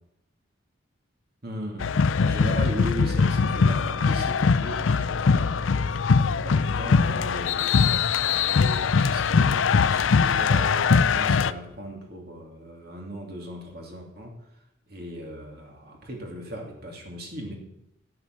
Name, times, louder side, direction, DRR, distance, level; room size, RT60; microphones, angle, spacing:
voice 1, 1.4-1.9 2.2-5.7 6.2-14.4 14.9-17.5, equal, 50° right, 1 dB, 2.6 m, -38 dB
sound 1, 1.8-11.5, left 5 dB, 85° left, 0.5 m, -22 dB
15.5 x 8.1 x 6.6 m, 0.83 s
head